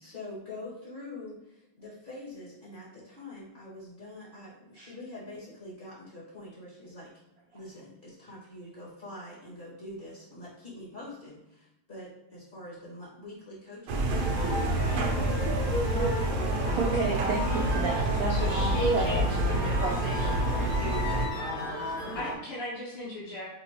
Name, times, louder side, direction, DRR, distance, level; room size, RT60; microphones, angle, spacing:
voice 1, 0.0-7.1 7.5-14.4 14.7-16.0, left 1 dB, 25° left, -8 dB, 1.9 m, -45 dB
sound 1, 13.9-21.3, right 1 dB, 65° right, 1.1 m, -28 dB
sound 2, 14.2-22.3, right 1 dB, 65° left, 2.2 m, -32 dB
voice 2, 16.7-18.4 18.9-19.2 19.8-20.0 20.5-20.8, right 4 dB, 90° right, 0 dB, 0.7 m, -32 dB
voice 3, 18.3-23.5, left 2 dB, 85° left, -8 dB, 2.0 m, -39 dB
5.9 x 2.9 x 2.9 m, 0.89 s
omnidirectional pair, 2.3 m